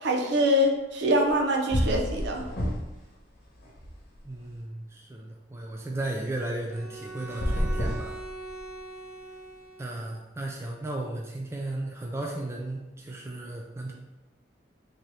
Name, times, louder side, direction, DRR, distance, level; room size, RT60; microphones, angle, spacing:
voice 1, 0.0-2.5, equal, 65° right, 1 dB, 0.6 m, -24 dB
sound 1, 1.3-1.4 1.7-3.0 3.4-4.5 7.2-8.8, equal, 55° left, 1.0 m, -29 dB
voice 2, 4.2-8.2 9.8-13.9, right 1 dB, 15° right, -1 dB, 0.3 m, -35 dB
Bowed string instrument, 6.7-10.2, right 3 dB, ahead, 1.0 m, -42 dB
3.7 x 2.8 x 3.2 m, 1.0 s
head